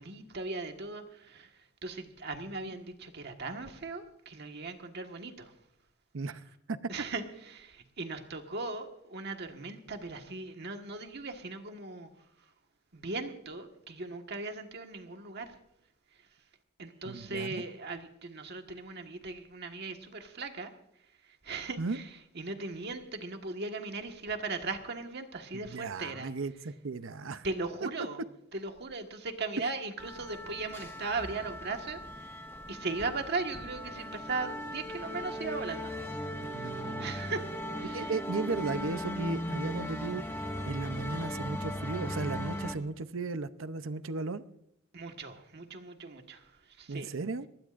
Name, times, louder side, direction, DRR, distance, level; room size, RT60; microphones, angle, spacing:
voice 1, 0.0-5.5 6.9-12.1 12.9-15.5 16.8-20.7 21.4-22.1 22.3-26.3 27.4-28.2 28.5-32.3 32.7-36.0 36.6-37.5 37.8-38.1 44.9-47.1, right 3 dB, 55° right, 5 dB, 1.6 m, -38 dB
voice 2, 17.0-17.6 21.8-22.0 25.5-27.5 27.8-27.9 29.6-29.7 36.5-37.1 37.8-40.4 40.7-44.4 46.9-47.5, right 3 dB, 70° right, 13 dB, 0.7 m, -35 dB
sound 1, 30.0-42.8, equal, 10° left, 1.6 m, -38 dB
20.5 x 19.0 x 2.5 m, 0.79 s
head